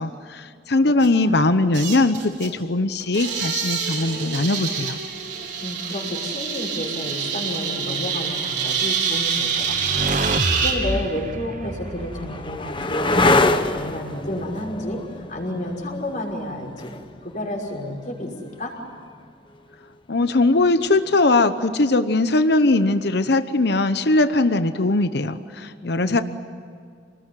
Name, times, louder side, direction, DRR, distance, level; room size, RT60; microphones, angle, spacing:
voice 1, 0.0-5.0 20.1-26.2, left 2 dB, 60° left, 10 dB, 0.9 m, -20 dB
sound 1, 1.0-1.1 1.7-2.5 3.0-10.8, right 6 dB, 75° right, 4.8 m, -26 dB
voice 2, 5.6-13.4 13.7-16.9 17.2-18.3 18.6-18.7 25.8-26.2, left 1 dB, 45° left, 0 dB, 5.6 m, -31 dB
sound 2, 9.0-13.3, right 2 dB, 45° right, 1.2 m, -29 dB
sound 3, 10.9-18.5 20.9-21.4, left 2 dB, 25° left, 1.3 m, -25 dB
28.5 x 20.0 x 9.9 m, 2.3 s
head